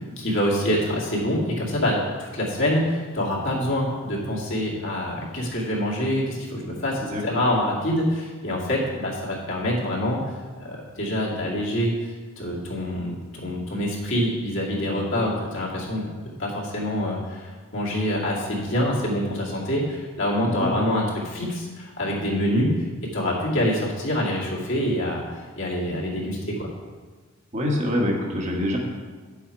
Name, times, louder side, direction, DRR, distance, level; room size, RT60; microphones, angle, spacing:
voice 1, 0.0-22.7 23.1-26.7, equal, 60° left, -4 dB, 2.2 m, -26 dB
voice 2, 7.1-7.4 20.4-20.7 27.5-28.8, left 1 dB, 30° right, 0 dB, 1.4 m, -25 dB
9.0 x 7.2 x 4.5 m, 1.4 s
head